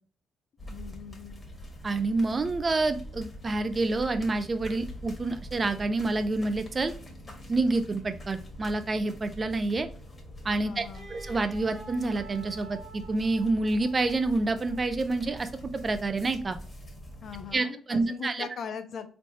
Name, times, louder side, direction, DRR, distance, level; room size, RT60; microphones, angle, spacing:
sound 1, 0.6-17.6, equal, 30° left, 1.5 m, -44 dB
voice 1, 0.7-1.4 10.6-11.1 17.2-19.1, left 6 dB, 60° left, 9 dB, 0.6 m, -40 dB
voice 2, 1.8-6.9 7.5-9.9 10.4-10.8 11.1-16.6 17.5-18.5, right 3 dB, 30° right, 9 dB, 0.5 m, -28 dB
Wind instrument woodwind instrument, 10.9-15.0, right 4 dB, 65° right, 1.4 m, -49 dB
4.1 x 3.2 x 2.7 m, 0.42 s
cardioid pair, 90°, 0 cm